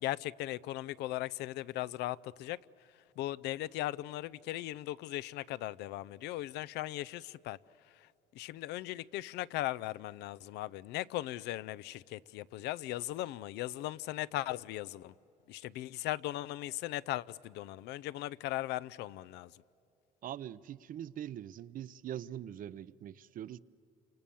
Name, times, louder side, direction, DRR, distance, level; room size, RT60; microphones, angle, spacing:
voice 1, 0.0-2.6 3.2-7.6 8.3-15.1 15.5-19.5, left 15 dB, 85° left, 0.5 m, -38 dB
voice 2, 20.2-23.6, right 10 dB, 55° right, 0.6 m, -43 dB
29.0 x 27.0 x 7.0 m
cardioid pair, 110°, 17 cm